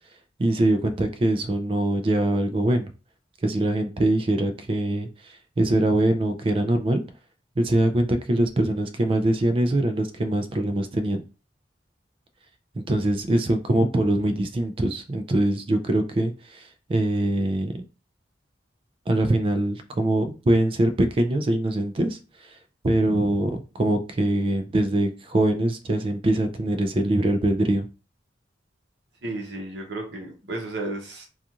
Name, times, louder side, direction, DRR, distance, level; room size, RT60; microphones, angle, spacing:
voice 1, 0.4-2.9 3.4-5.1 5.6-7.0 7.6-11.2 12.8-17.8 19.1-22.2 22.8-27.9, right 1 dB, 30° right, 0.3 m, -23 dB
voice 2, 29.2-31.3, right 2 dB, 60° right, 0.8 m, -33 dB
2.4 x 2.4 x 2.8 m
head